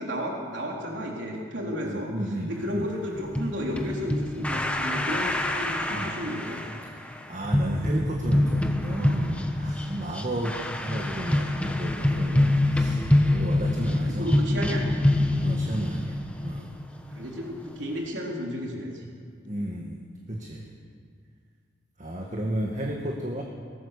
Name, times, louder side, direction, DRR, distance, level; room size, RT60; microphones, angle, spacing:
voice 1, 0.0-6.8 13.8-15.0 17.1-19.1, equal, 75° right, -1 dB, 3.8 m, -33 dB
voice 2, 2.1-2.9 5.9-6.1 7.3-14.3 15.4-16.7 19.5-20.0 20.3-20.7 22.0-23.4, right 1 dB, 40° right, 0 dB, 1.9 m, -33 dB
sound 1, 3.1-18.1, left 1 dB, 5° left, 1.2 m, -26 dB
22.5 x 19.0 x 6.8 m, 2.1 s
head